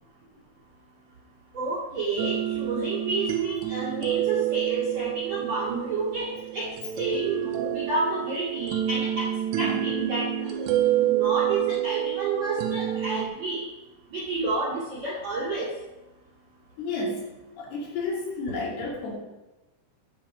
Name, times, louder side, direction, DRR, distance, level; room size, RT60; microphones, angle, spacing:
voice 1, 1.5-6.7 7.0-9.3 9.6-10.2 10.5-10.7 11.0-13.6 14.1-15.7, right 2 dB, 45° right, -6 dB, 2.7 m, -30 dB
sound 1, 2.2-13.3, right 12 dB, 80° right, 2.7 m, -28 dB
voice 2, 16.8-17.3 17.6-19.2, left 3 dB, 60° left, -4 dB, 4.5 m, -31 dB
12.0 x 7.5 x 5.0 m, 1.1 s
omnidirectional pair, 5.4 m